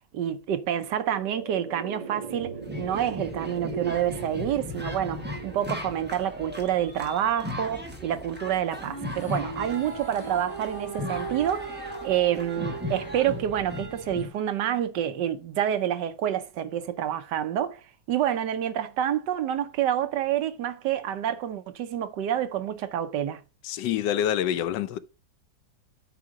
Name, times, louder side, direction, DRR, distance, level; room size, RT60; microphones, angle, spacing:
voice 1, 0.1-17.8 18.1-23.4, right 10 dB, 75° right, 1.3 m, -28 dB
sound 1, 0.7-11.2, right 6 dB, 25° right, 1.7 m, -41 dB
sound 2, 2.6-14.3, left 1 dB, 5° right, 0.9 m, -37 dB
sound 3, 8.7-14.2, right 3 dB, 20° left, 1.2 m, -39 dB
voice 2, 23.6-25.0, left 10 dB, 75° left, 1.2 m, -26 dB
8.5 x 3.8 x 4.9 m
omnidirectional pair, 2.0 m